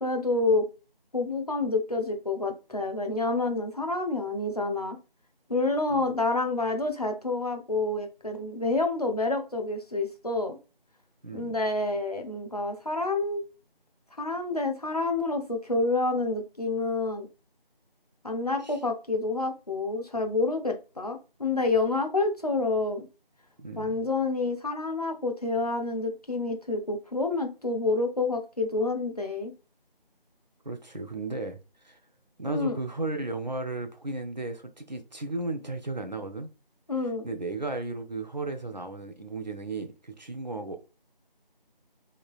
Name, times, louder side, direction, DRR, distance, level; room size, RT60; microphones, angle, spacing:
voice 1, 0.0-0.6 1.1-5.0 5.5-10.6 11.3-13.4 14.2-17.3 18.2-23.1 23.8-29.5 32.5-32.8 36.9-37.3, left 3 dB, 40° left, 0.6 m, -28 dB
voice 2, 11.2-11.6 18.6-18.8 23.6-24.1 30.6-31.6 31.8-32.0 32.4-36.5 37.2-40.8, right 2 dB, 50° right, 0.5 m, -35 dB
3.2 x 2.8 x 2.3 m
figure-of-eight pair, 170°, 29 cm